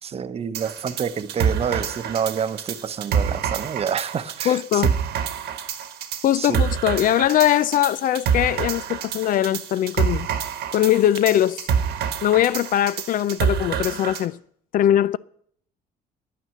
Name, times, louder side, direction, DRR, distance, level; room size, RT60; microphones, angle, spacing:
voice 1, 0.0-4.9 6.3-6.6, right 7 dB, 35° right, 0.8 m, -28 dB
sound 1, 0.5-14.3, right 7 dB, 75° right, 1.3 m, -27 dB
voice 2, 4.5-4.9 6.2-10.3 10.7-11.7 12.2-14.4 14.7-15.2, left 12 dB, 55° left, 0.4 m, -21 dB
10.0 x 9.4 x 7.5 m
cardioid pair, 110°, 17 cm